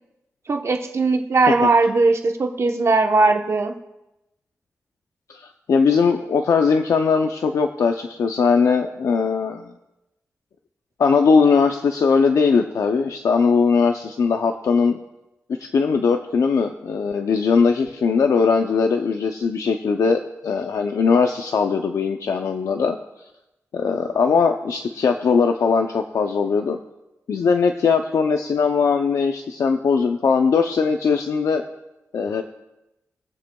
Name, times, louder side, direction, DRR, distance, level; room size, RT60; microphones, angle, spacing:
voice 1, 0.5-3.7, right 3 dB, 55° right, 4 dB, 1.0 m, -19 dB
voice 2, 5.3-9.7 11.0-15.0 15.6-23.0 23.7-26.8 27.3-31.6 32.1-32.4, left 5 dB, 90° left, 5 dB, 0.5 m, -20 dB
21.5 x 7.4 x 2.3 m, 0.95 s
cardioid pair, 70°, 6 cm